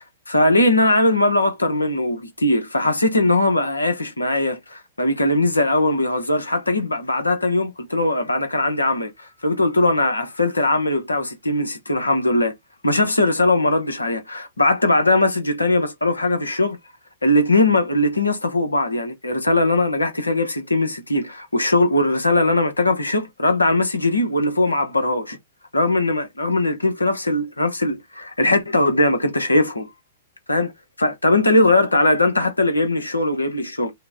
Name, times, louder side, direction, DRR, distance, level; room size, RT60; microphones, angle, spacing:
voice 1, 0.3-12.5 12.8-16.8 17.2-25.4 25.7-29.9 30.5-30.7 31.0-33.9, left 2 dB, 80° left, 1.0 m, -20 dB
5.7 x 2.2 x 3.5 m
figure-of-eight pair, 110°, 0 cm